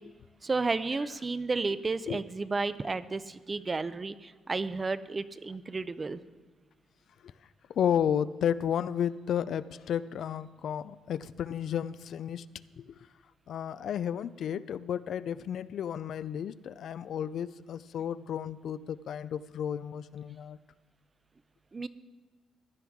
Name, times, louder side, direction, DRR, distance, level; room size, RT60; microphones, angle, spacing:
voice 1, 0.4-6.2 21.7-21.9, right 3 dB, 30° right, 14 dB, 0.5 m, -32 dB
voice 2, 7.7-12.4 12.8-13.0 13.5-20.6, left 9 dB, 65° left, 15 dB, 0.3 m, -32 dB
16.0 x 10.5 x 3.6 m, 1.4 s
cardioid pair, 90°, 0 cm